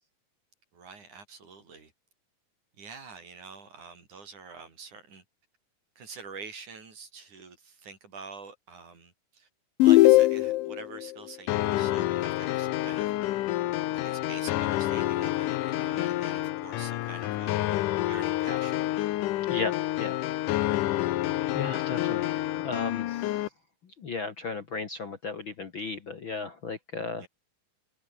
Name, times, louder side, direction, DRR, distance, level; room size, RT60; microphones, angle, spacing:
voice 1, 0.7-1.9 2.8-5.2 6.0-9.5 9.8-13.2 13.9-17.6 18.1-18.9 27.1-27.3, right 5 dB, 60° right, 6.1 m, -46 dB
sound 1, 9.8-10.8, left 17 dB, 90° left, 2.6 m, -18 dB
sound 2, 11.5-23.5, left 15 dB, 75° left, 2.4 m, -29 dB
voice 2, 19.5-20.2 20.5-21.1 21.5-23.4 24.0-27.3, left 4 dB, 45° left, 2.0 m, -36 dB
omnidirectional pair, 3.9 m